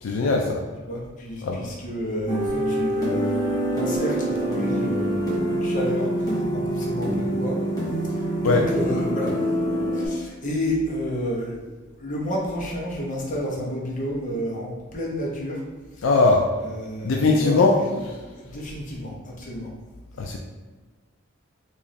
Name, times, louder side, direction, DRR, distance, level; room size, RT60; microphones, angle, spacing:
voice 1, 0.0-0.6 1.4-1.7 8.4-8.6 16.0-16.5 17.0-17.7 20.2-20.4, left 3 dB, 80° left, 1 dB, 0.4 m, -20 dB
voice 2, 0.8-7.6 8.1-9.4 9.7-11.5 11.9-15.6 16.0-18.0 18.3-19.7, equal, 40° left, -4 dB, 0.8 m, -31 dB
sound 1, 2.3-10.1, right 1 dB, 20° left, 1.1 m, -25 dB
3.0 x 2.5 x 4.1 m, 1.3 s
head